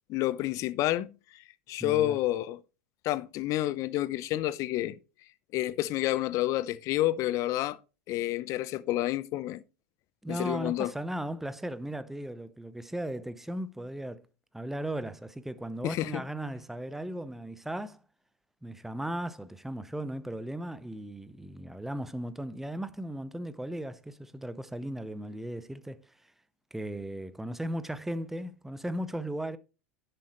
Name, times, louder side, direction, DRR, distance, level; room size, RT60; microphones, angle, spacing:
voice 1, 0.1-1.1 1.7-2.6 3.0-5.0 5.5-7.8 8.1-9.6 10.3-10.9 15.8-16.2, left 15 dB, 45° left, 0.7 m, -29 dB
voice 2, 1.8-2.2 10.2-14.3 14.5-18.0 18.6-26.1 26.7-29.6, right 1 dB, 5° right, 0.8 m, -36 dB
10.5 x 7.8 x 3.1 m
hypercardioid pair, 90°, 7 cm